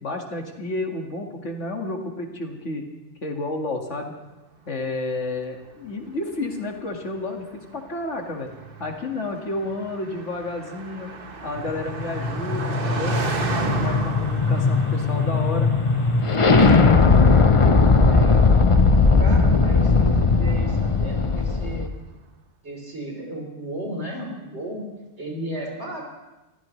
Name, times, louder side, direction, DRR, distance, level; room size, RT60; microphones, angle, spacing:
voice 1, 0.0-2.8 3.2-4.1 4.7-8.5 8.8-11.1 11.4-13.2 13.7-15.7, left 2 dB, 80° left, 2 dB, 2.3 m, -31 dB
Car passing by, 5.1-21.6, right 4 dB, 50° right, 1.3 m, -35 dB
sound 1, 11.7-21.9, left 4 dB, 30° left, 0.8 m, -18 dB
voice 2, 17.5-18.8 19.2-21.9 22.6-24.9 25.2-26.0, right 1 dB, 65° right, -1 dB, 4.2 m, -34 dB
25.5 x 15.0 x 3.2 m, 1.0 s
omnidirectional pair, 1.2 m